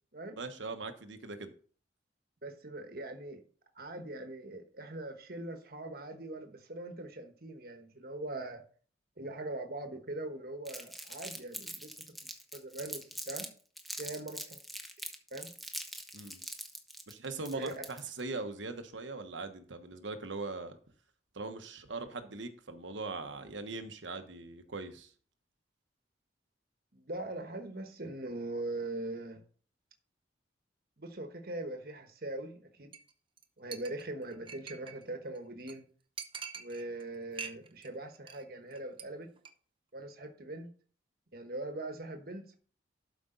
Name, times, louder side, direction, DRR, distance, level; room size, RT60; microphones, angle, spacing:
voice 1, 0.4-1.5 16.1-16.4 17.1-20.8 21.3-25.1, right 3 dB, 90° right, 1.2 m, -41 dB
voice 2, 2.4-3.4 3.8-8.6 9.2-11.9 12.5-13.0 13.3-13.5 14.0-14.6 15.3-15.5 17.5-17.9 26.9-29.4 31.0-32.9 33.6-35.8 36.6-39.3 39.9-40.7 41.3-42.5, right 2 dB, 55° right, 1.3 m, -41 dB
Crumpling crinkling, 10.6-13.5 13.8-18.2, equal, ahead, 0.9 m, -43 dB
Chink clink, 32.9-33.1 33.4-33.5 33.7-35.0 35.4-35.5 35.7-35.8 36.2-37.0 37.3-37.9 38.1-38.4 38.7-39.0 39.4-39.5, right 6 dB, 30° right, 0.7 m, -44 dB
12.0 x 5.2 x 3.9 m
head